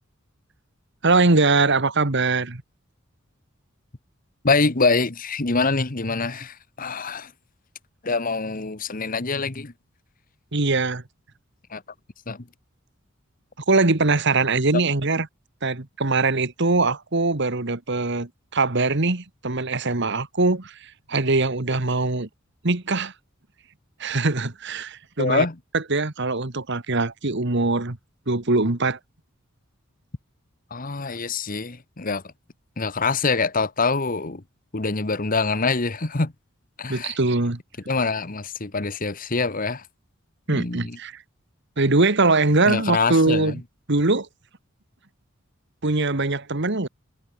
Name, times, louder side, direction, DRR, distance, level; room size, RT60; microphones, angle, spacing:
voice 1, 1.0-2.6 10.5-11.0 13.7-15.3 15.6-20.7 21.1-22.3 22.6-23.1 24.0-25.5 25.7-28.0 28.3-29.0 36.9-37.6 40.5-41.2 41.8-43.6 43.9-44.3 45.8-46.9, right 3 dB, 60° right, 1.7 m, -22 dB
voice 2, 4.4-7.3 8.0-9.7 11.7-11.8 12.3-12.4 25.2-25.6 30.7-32.2 32.8-34.4 34.7-36.3 36.8-37.2 37.9-39.8 40.5-41.0 42.7-43.6, left 4 dB, 40° left, 1.3 m, -25 dB
head